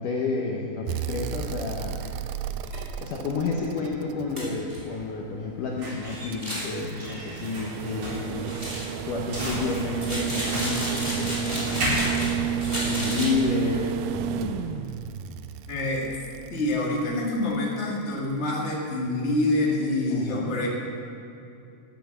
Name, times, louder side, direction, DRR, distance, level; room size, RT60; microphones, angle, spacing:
voice 1, 0.0-2.1 3.0-8.4 9.0-12.3 12.9-14.7 20.1-20.5, left 4 dB, 75° left, -1 dB, 1.9 m, -30 dB
sound 1, 0.9-5.0 6.3-17.5 19.1-19.2, right 9 dB, 85° right, 2.3 m, -32 dB
sound 2, 2.0-2.1 2.7-2.8 3.2-3.3 3.6-3.7 4.4-4.8 6.3-6.7 8.5-9.0 10.0-12.3 12.6-13.3, equal, 5° right, 2.9 m, -32 dB
sound 3, 4.3-13.3, equal, 45° right, 4.7 m, -35 dB
voice 2, 15.7-16.1 16.5-20.7, left 2 dB, 45° left, -3 dB, 0.8 m, -26 dB
13.0 x 8.6 x 7.0 m, 2.7 s
omnidirectional pair, 4.9 m